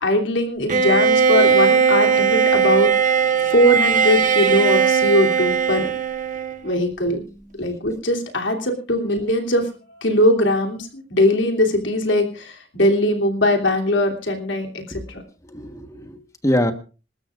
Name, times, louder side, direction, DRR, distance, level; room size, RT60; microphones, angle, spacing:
voice 1, 0.0-2.9 3.5-5.9 6.6-7.2 7.6-9.7 10.0-15.2, left 1 dB, 80° left, 3 dB, 3.1 m, -20 dB
Bowed string instrument, 0.7-6.7, right 6 dB, 45° right, 1.2 m, -18 dB
voice 2, 15.4-16.7, left 1 dB, 15° left, 7 dB, 1.3 m, -24 dB
27.0 x 13.0 x 2.5 m, 0.34 s
head